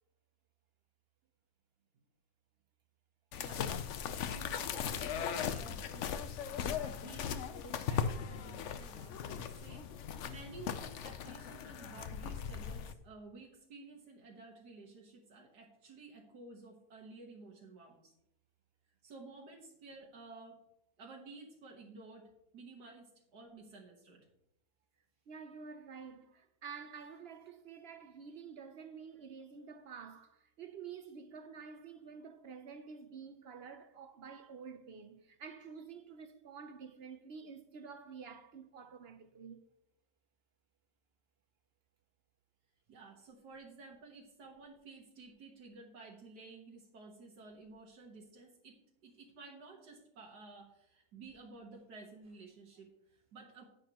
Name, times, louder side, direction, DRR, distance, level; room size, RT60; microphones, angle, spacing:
sound 1, 3.3-12.9, left 7 dB, 65° left, 0.8 m, -38 dB
voice 1, 3.4-18.1 19.0-20.6 21.0-24.3 42.9-53.6, right 3 dB, 85° right, 1.9 m, -53 dB
voice 2, 25.3-39.6, right 6 dB, 60° right, 0.7 m, -49 dB
9.7 x 8.7 x 2.9 m
omnidirectional pair, 1.7 m